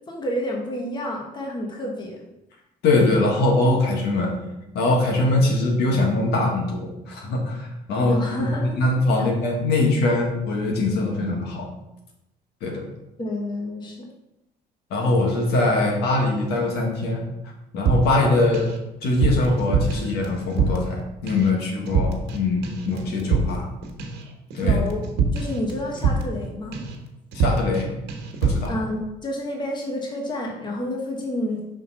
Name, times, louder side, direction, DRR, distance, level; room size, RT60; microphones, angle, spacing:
voice 1, 0.1-2.2 8.1-8.8 9.2-9.3 13.2-14.1 24.6-25.0 25.3-26.8 28.7-31.6, left 1 dB, 25° left, 0 dB, 1.3 m, -29 dB
voice 2, 2.8-4.3 4.7-8.5 8.7-11.7 12.6-12.8 14.9-17.2 17.7-18.7 19.0-23.7 24.5-24.8 27.3-27.9 28.4-28.7, left 2 dB, 75° left, 0 dB, 1.5 m, -22 dB
sound 1, 17.9-18.8 19.0-21.0 21.3-21.6 21.9-22.4 22.6-26.4 26.7-27.0 27.3-27.8 28.1-28.7, right 4 dB, 80° right, 1.1 m, -24 dB
5.3 x 3.7 x 5.6 m, 0.91 s
cardioid pair, 110°, 17 cm